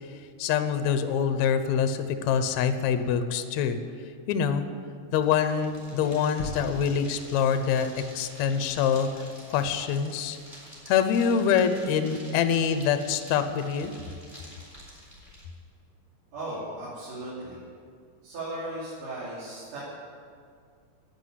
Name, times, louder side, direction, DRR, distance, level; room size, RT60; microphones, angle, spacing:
voice 1, 0.4-3.8 4.3-4.6 5.1-9.1 9.5-10.4 10.9-13.9, left 7 dB, 70° left, 9 dB, 1.8 m, -25 dB
sound 1, 5.1-15.4, equal, 10° right, 4.0 m, -49 dB
sound 2, 6.4-8.5, left 4 dB, 45° left, 2.2 m, -40 dB
voice 2, 16.3-17.6 18.2-19.8, right 1 dB, 70° right, -9 dB, 4.5 m, -36 dB
11.5 x 8.4 x 9.5 m, 2.2 s
omnidirectional pair, 3.9 m